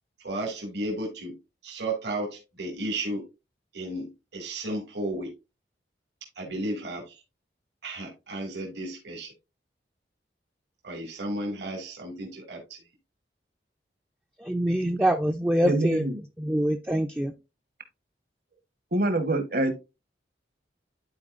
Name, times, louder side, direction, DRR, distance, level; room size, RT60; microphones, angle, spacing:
voice 1, 0.2-1.4 1.6-3.3 3.7-5.3 6.4-7.2 7.8-9.3 10.8-12.8, right 1 dB, 75° right, 2.2 m, -33 dB
voice 2, 14.4-16.0 16.4-17.3, right 1 dB, 10° right, 0.4 m, -25 dB
voice 3, 15.6-16.2 18.9-19.7, right 2 dB, 55° right, 1.1 m, -25 dB
12.0 x 4.4 x 2.4 m
head